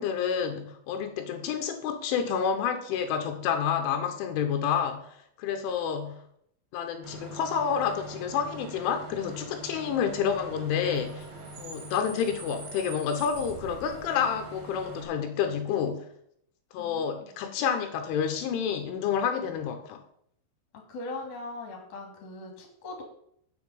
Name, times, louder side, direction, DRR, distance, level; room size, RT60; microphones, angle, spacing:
voice 1, 0.0-6.2 6.7-11.3 11.6-16.0 16.7-20.0, left 7 dB, 80° left, 6 dB, 3.4 m, -29 dB
Bus / Idling / Screech, 7.0-15.0, right 3 dB, 45° right, 2.7 m, -43 dB
voice 2, 16.8-17.3 20.7-23.0, left 2 dB, 40° left, 1 dB, 2.8 m, -40 dB
7.3 x 6.9 x 7.8 m, 0.70 s
omnidirectional pair, 5.7 m